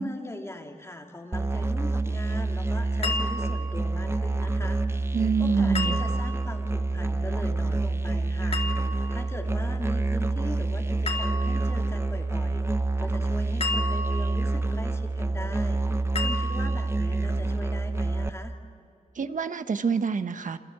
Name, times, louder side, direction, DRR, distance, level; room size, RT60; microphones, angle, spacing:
voice 1, 0.0-4.8 5.4-8.6 9.1-12.6 13.0-18.6, left 1 dB, 20° left, 2 dB, 2.6 m, -40 dB
Musical instrument, 1.3-18.3, right 3 dB, 20° right, 0.9 m, -27 dB
sound 1, 3.0-3.7 5.7-6.5 8.5-9.2 11.1-11.7 13.6-14.5 16.2-16.9, left 3 dB, 45° left, 2.8 m, -32 dB
voice 2, 5.1-6.0 19.2-20.6, right 5 dB, 65° right, 10 dB, 1.1 m, -26 dB
29.5 x 26.5 x 7.5 m, 2.5 s
wide cardioid pair, 90°, 14 cm